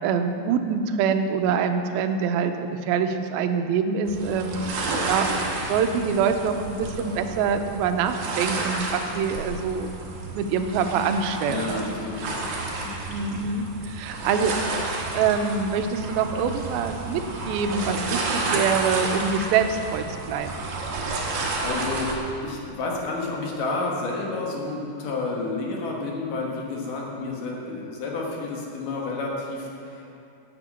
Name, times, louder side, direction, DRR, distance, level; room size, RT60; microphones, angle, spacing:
voice 1, 0.0-4.6 5.1-5.3 5.7-9.9 10.3-11.8 13.1-14.6 15.1-20.6 27.2-27.3, right 6 dB, 90° right, 7 dB, 2.5 m, -25 dB
sound 1, 4.1-22.2, right 3 dB, 65° right, 2.8 m, -31 dB
voice 2, 11.5-12.5 12.8-13.0 21.1-22.1 22.4-30.1, left 3 dB, 65° left, -2 dB, 2.9 m, -30 dB
10.0 x 6.9 x 8.2 m, 2.6 s
omnidirectional pair, 4.1 m